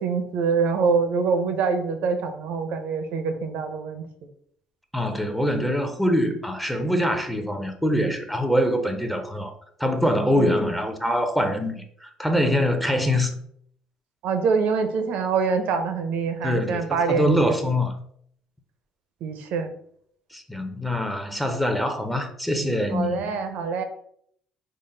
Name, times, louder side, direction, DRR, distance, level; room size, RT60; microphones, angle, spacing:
voice 1, 0.0-4.0 10.3-10.6 14.2-17.6 19.2-19.7 22.9-23.8, right 5 dB, 75° right, 0.6 m, -25 dB
voice 2, 4.9-9.5 9.8-13.3 16.4-17.9 20.3-23.3, equal, 5° left, 0.5 m, -24 dB
3.8 x 2.0 x 3.8 m
cardioid pair, 105°, 3 cm